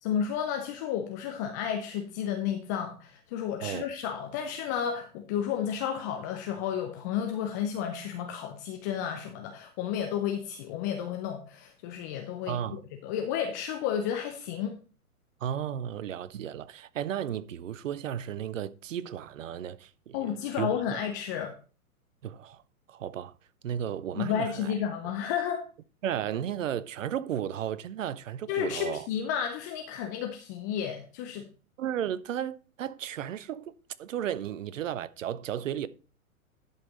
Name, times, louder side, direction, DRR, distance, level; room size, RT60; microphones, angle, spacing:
voice 1, 0.0-14.7 20.1-21.5 24.1-25.6 28.5-31.5, left 8 dB, 15° left, 0.4 m, -32 dB
voice 2, 12.5-12.8 15.4-21.0 22.2-22.6 22.9-23.3 23.6-24.8 26.0-29.1 31.8-33.7 34.0-35.9, right 10 dB, 60° right, 0.8 m, -34 dB
11.0 x 5.6 x 3.9 m
figure-of-eight pair, 110°, 43 cm